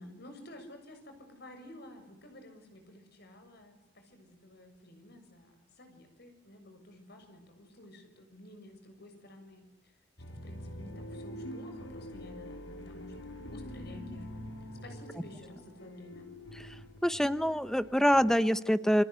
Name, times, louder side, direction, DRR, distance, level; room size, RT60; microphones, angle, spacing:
voice 1, 0.0-10.0 10.3-14.4 14.8-16.3, left 1 dB, 60° left, 6 dB, 7.2 m, -52 dB
sound 1, 10.2-18.4, left 1 dB, 80° left, 3.8 m, -45 dB
voice 2, 17.0-19.0, equal, 5° left, 13 dB, 1.0 m, -25 dB
29.5 x 23.5 x 8.3 m, 0.89 s
head